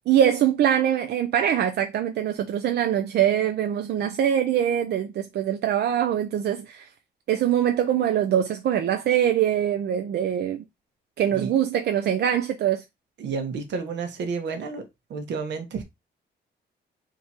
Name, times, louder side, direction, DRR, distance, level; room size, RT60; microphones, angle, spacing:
voice 1, 0.0-6.9 7.3-10.6 11.2-12.8, right 10 dB, 65° right, 0.5 m, -23 dB
voice 2, 13.2-14.8 15.1-15.8, right 5 dB, 80° right, 1.2 m, -30 dB
3.6 x 2.9 x 4.2 m
cardioid pair, 135°, 18 cm